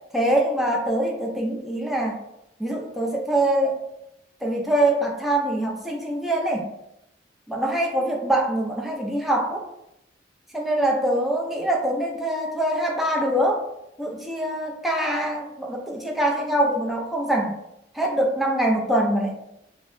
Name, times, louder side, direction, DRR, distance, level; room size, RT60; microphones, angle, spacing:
voice 1, 0.1-2.2 2.6-3.8 4.4-6.7 7.5-9.6 10.5-13.6 14.0-17.6 17.9-19.4, right 1 dB, ahead, -1 dB, 0.4 m, -24 dB
3.1 x 2.0 x 3.8 m, 0.82 s
head